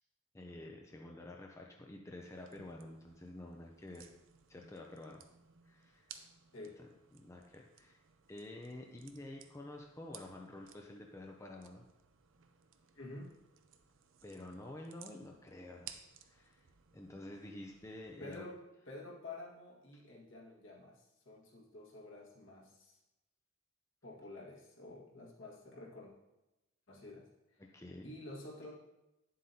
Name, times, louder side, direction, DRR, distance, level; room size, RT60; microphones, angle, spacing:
voice 1, 0.3-4.1 4.5-5.2 5.7-6.1 6.8-6.9 7.1-8.0 8.3-11.9 14.2-15.9 16.3-16.6 16.9-18.4 27.6-28.1, left 1 dB, 15° left, 0 dB, 0.5 m, -49 dB
sound 1, 2.2-18.4, right 9 dB, 70° right, 0.6 m, -59 dB
voice 2, 13.0-13.3 18.2-18.6 18.9-23.0 24.0-26.1 26.9-27.3 28.0-28.7, left 2 dB, 65° left, -3 dB, 1.7 m, -50 dB
9.4 x 7.5 x 2.8 m, 0.97 s
head